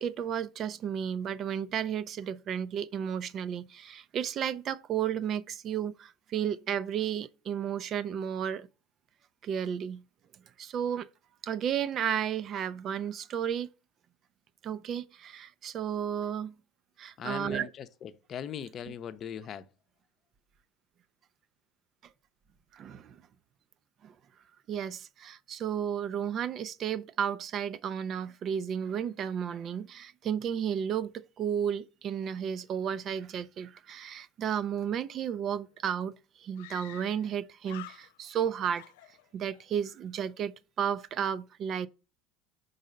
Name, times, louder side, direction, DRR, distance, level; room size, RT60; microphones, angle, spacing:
voice 1, 0.0-8.7 9.4-10.0 10.6-11.1 11.4-13.7 14.6-16.6 17.0-17.7 22.7-23.2 24.0-24.1 24.7-38.8 39.3-41.9, right 8 dB, 45° right, 0.4 m, -33 dB
voice 2, 17.2-19.7, left 8 dB, 45° left, 0.6 m, -40 dB
Screaming, 35.5-35.6 35.8-35.9 36.6-37.4 37.6-38.4 38.7-39.7, left 16 dB, 80° left, 0.3 m, -49 dB
5.4 x 4.0 x 5.1 m
supercardioid pair, 90°, 0 cm